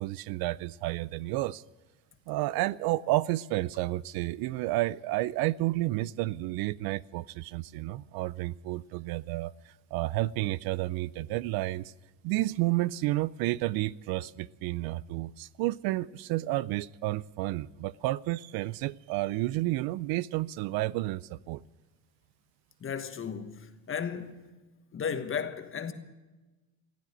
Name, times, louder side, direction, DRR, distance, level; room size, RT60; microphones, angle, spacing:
voice 1, 0.0-1.6 2.3-11.9 12.2-21.6, right 17 dB, 65° right, 0.5 m, -31 dB
voice 2, 22.8-24.6 24.9-25.9, left 7 dB, 30° left, 1.3 m, -35 dB
15.5 x 9.3 x 9.7 m
supercardioid pair, 100°, 39 cm